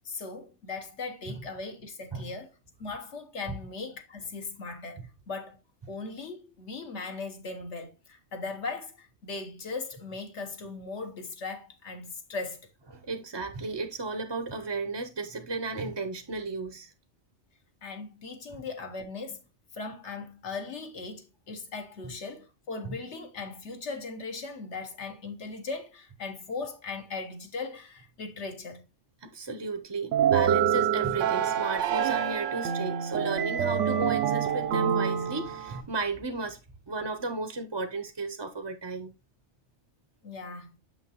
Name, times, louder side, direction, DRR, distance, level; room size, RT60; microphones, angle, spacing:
voice 1, 0.0-2.5 2.8-5.0 5.3-5.6 5.9-12.7 17.8-19.4 19.7-28.8 40.2-40.8, left 4 dB, 70° left, 1.4 m, -38 dB
voice 2, 12.9-16.9 22.8-23.0 29.2-36.6 36.9-39.1, right 3 dB, 30° right, 0.6 m, -34 dB
sound 1, 30.1-35.8, right 9 dB, 80° right, 0.9 m, -26 dB
6.8 x 5.8 x 2.9 m
omnidirectional pair, 1.2 m